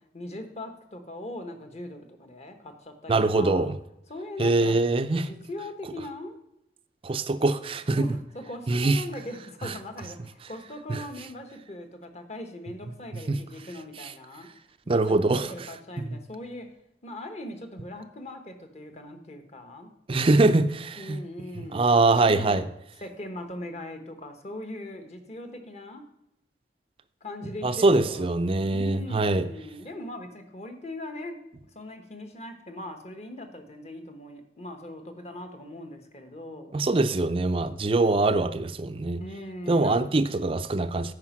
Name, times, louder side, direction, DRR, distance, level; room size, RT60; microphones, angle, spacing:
voice 1, 0.1-3.6 4.1-4.8 5.2-6.4 8.0-14.5 14.8-16.7 17.0-19.9 21.0-22.7 23.0-26.0 27.2-28.4 28.7-31.4 31.7-36.7 39.2-40.0, left 1 dB, 40° left, 1.1 m, -40 dB
voice 2, 3.1-3.7 4.4-5.3 7.0-8.1 8.7-9.0 9.6-9.7 10.9-11.0 13.3-13.4 14.9-15.5 16.1-16.2 20.1-21.2 21.7-22.6 27.6-29.5 36.7-39.2 39.7-41.1, right 2 dB, 30° right, 0.4 m, -23 dB
9.6 x 5.1 x 6.0 m
head